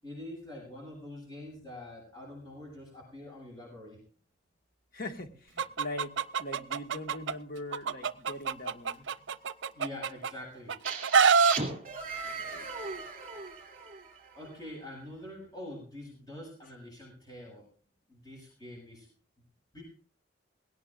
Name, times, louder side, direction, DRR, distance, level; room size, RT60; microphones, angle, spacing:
voice 1, 0.0-4.0 9.7-10.8 14.3-17.7 18.1-19.1 19.7-19.8, left 1 dB, 20° left, -3 dB, 7.9 m, -45 dB
voice 2, 4.9-9.1 12.4-12.7, left 1 dB, 50° left, 5 dB, 1.8 m, -41 dB
Chicken rooster, 5.6-7.3 7.7-10.3 10.7-11.6, right 5 dB, 80° right, 0.6 m, -25 dB
sound 1, 10.8-14.6, right 4 dB, 40° right, 2.9 m, -38 dB
20.0 x 17.5 x 2.6 m, 0.43 s
head